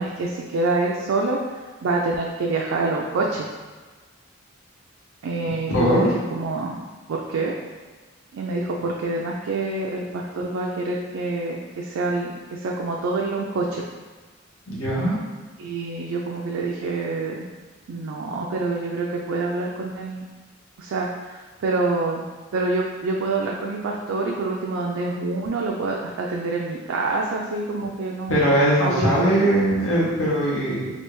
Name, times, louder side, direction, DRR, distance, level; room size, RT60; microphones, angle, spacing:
voice 1, 0.0-1.4 1.8-3.5 5.2-6.8 7.1-7.5 8.3-13.8 15.6-17.4 17.9-20.3 20.8-22.2 22.5-29.8, right 3 dB, 75° right, -2 dB, 0.3 m, -26 dB
voice 2, 5.7-6.1 14.7-15.2 28.3-30.9, right 1 dB, 85° left, -7 dB, 1.0 m, -20 dB
3.3 x 2.5 x 3.0 m, 1.4 s
head